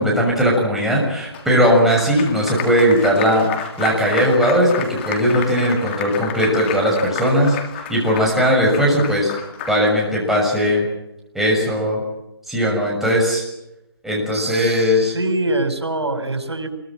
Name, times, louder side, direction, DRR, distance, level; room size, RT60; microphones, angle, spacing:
voice 1, 0.0-9.3 9.7-10.9 11.3-12.0 12.5-13.4 14.0-15.1, equal, ahead, -3 dB, 6.5 m, -18 dB
Applause, 1.3-10.1, left 7 dB, 25° left, 3.4 m, -31 dB
voice 2, 14.3-16.7, right 2 dB, 85° right, 7 dB, 5.8 m, -24 dB
26.5 x 23.0 x 7.6 m, 0.90 s
figure-of-eight pair, 155°, 14 cm